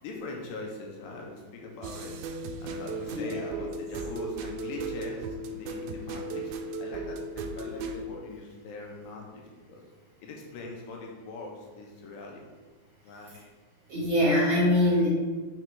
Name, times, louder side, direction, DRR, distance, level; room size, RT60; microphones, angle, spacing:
voice 1, 0.0-2.1 2.6-6.5 6.8-9.4 9.7-9.8 10.2-12.4 13.0-13.4, left 3 dB, 80° left, 0 dB, 2.4 m, -41 dB
sound 1, 1.8-8.0, right 3 dB, 90° right, 2.4 m, -36 dB
voice 2, 3.1-3.6 13.9-15.1, left 1 dB, 55° right, -7 dB, 2.6 m, -24 dB
6.2 x 3.5 x 4.5 m, 1.4 s
omnidirectional pair, 4.2 m